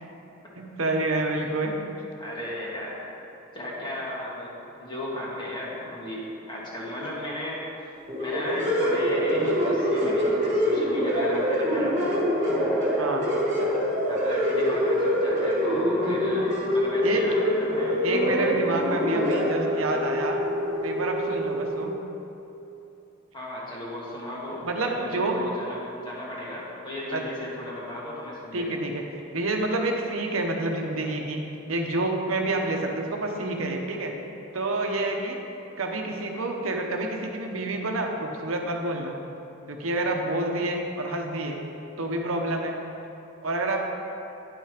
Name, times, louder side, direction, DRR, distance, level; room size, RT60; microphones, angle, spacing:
voice 1, 0.6-1.8 13.0-13.3 17.0-17.2 18.0-20.4 20.8-22.0 24.6-25.4 27.1-27.2 28.5-29.0 29.3-31.4 31.7-34.1 34.5-35.4 35.8-39.2 39.7-41.6 42.0-42.8 43.4-43.8, right 2 dB, 80° right, 2 dB, 0.9 m, -28 dB
voice 2, 2.2-3.1 3.5-7.6 8.2-12.0 14.1-16.5 16.7-18.0 23.3-28.8, left 1 dB, 20° left, -6 dB, 1.8 m, -35 dB
sound 1, 8.1-21.8, equal, 35° right, 2.0 m, -25 dB
10.0 x 5.7 x 5.0 m, 2.9 s
head